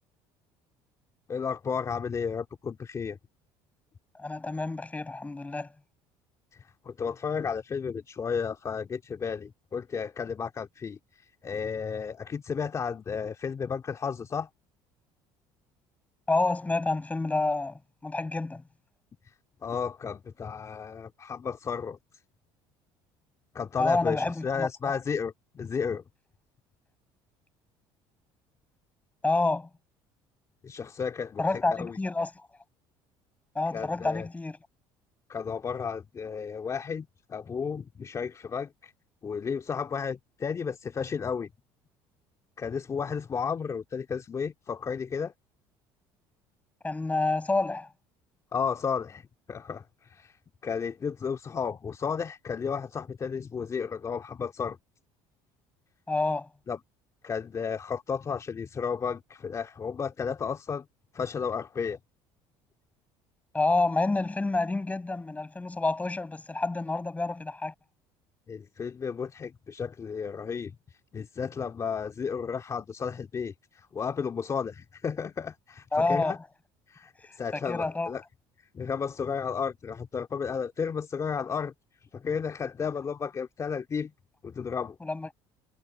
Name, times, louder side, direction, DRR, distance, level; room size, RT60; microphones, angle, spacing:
voice 1, 1.3-3.2 6.5-14.5 19.6-22.0 23.5-26.0 30.6-32.0 33.7-34.3 35.3-38.9 39.2-41.5 42.6-45.3 48.5-50.4 50.6-54.8 56.7-56.8 57.2-60.9 61.1-62.0 68.5-70.8 71.1-76.4 76.9-78.2 78.7-81.7 82.1-84.1 84.4-85.0, left 6 dB, 30° left, 2.8 m, -33 dB
voice 2, 4.1-5.7 16.3-18.6 23.8-24.9 29.2-29.7 31.4-32.3 33.5-34.6 46.8-47.9 56.1-56.5 63.5-67.7 75.9-76.4 77.5-78.1 85.0-85.3, left 3 dB, 15° left, 7.8 m, -28 dB
supercardioid pair, 100°, 10 cm